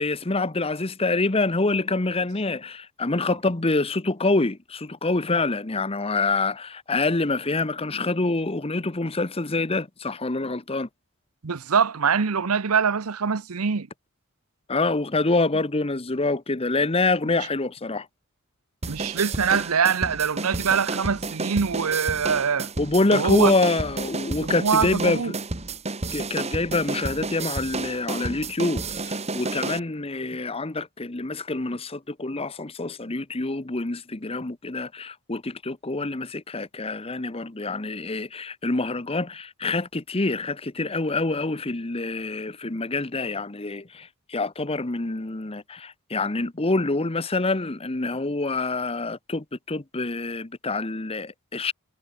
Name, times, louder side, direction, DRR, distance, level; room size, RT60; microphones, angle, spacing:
voice 1, 0.0-10.9 14.7-18.1 22.8-25.3 26.1-51.7, left 3 dB, 25° left, 1.0 m, -26 dB
voice 2, 11.4-13.9 17.3-17.4 18.9-22.7 23.1-23.5 24.4-25.3, right 6 dB, 90° right, 0.8 m, -23 dB
sound 1, 18.8-29.8, right 3 dB, 30° right, 2.0 m, -31 dB
head